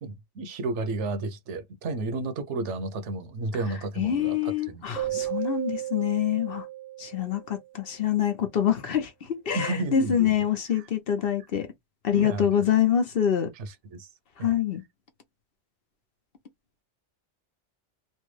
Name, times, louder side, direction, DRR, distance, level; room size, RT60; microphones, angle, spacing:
voice 1, 0.0-5.3 9.5-10.5 12.1-12.5 13.6-14.1 14.4-14.6, right 2 dB, 75° right, 1.0 m, -32 dB
voice 2, 4.0-6.7 7.0-11.7 12.0-13.5 14.4-14.8, left 9 dB, 55° left, 1.0 m, -25 dB
Keyboard (musical), 4.9-7.7, right 14 dB, ahead, 0.7 m, -34 dB
3.3 x 2.2 x 3.2 m
omnidirectional pair, 1.2 m